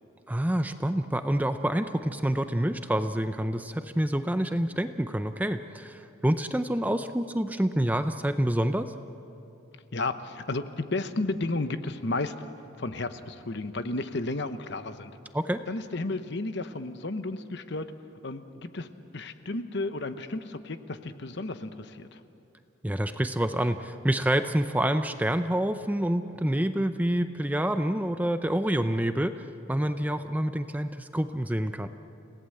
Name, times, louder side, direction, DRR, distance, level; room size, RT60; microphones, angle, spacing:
voice 1, 0.3-8.9 15.3-15.6 22.8-31.9, right 1 dB, 10° right, 9 dB, 0.5 m, -27 dB
voice 2, 9.9-12.5 12.8-15.1 15.7-17.9 18.2-18.9 19.1-22.2, left 2 dB, 55° left, 10 dB, 0.9 m, -33 dB
30.0 x 17.5 x 7.8 m, 2.8 s
head